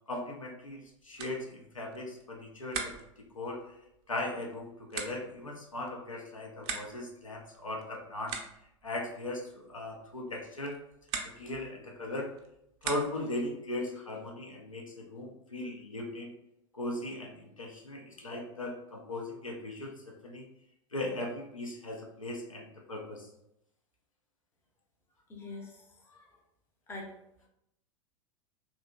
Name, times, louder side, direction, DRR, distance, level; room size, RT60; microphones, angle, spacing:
voice 1, 0.1-3.0 3.3-3.6 4.1-8.4 8.8-10.8 11.2-12.3 12.8-16.3 16.7-19.9 20.2-20.4 20.9-23.3, left 2 dB, 85° left, 0 dB, 0.5 m, -38 dB
sound 1, 0.8-13.4, right 6 dB, 35° right, 0.4 m, -44 dB
voice 2, 25.3-26.4 26.9-27.5, left 2 dB, 15° left, 0 dB, 0.6 m, -46 dB
2.7 x 2.5 x 2.2 m, 0.81 s
figure-of-eight pair, 85°, 16 cm